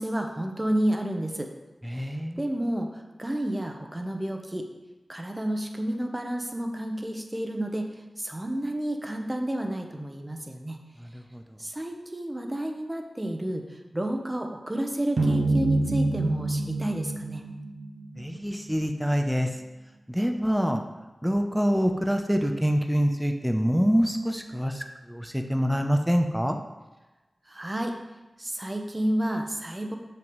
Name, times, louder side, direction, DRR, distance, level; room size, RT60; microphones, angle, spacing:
voice 1, 0.0-1.5 1.9-4.7 5.1-10.8 11.6-17.4 27.5-27.9 28.4-30.0, right 1 dB, 25° right, 4 dB, 0.9 m, -30 dB
voice 2, 1.8-2.4 11.0-11.6 18.2-19.5 20.1-20.8 21.2-26.6, equal, 5° right, 4 dB, 0.6 m, -26 dB
sound 1, 15.2-18.4, right 2 dB, 80° right, 0.8 m, -26 dB
6.9 x 6.0 x 3.2 m, 1.1 s
cardioid pair, 45°, 0 cm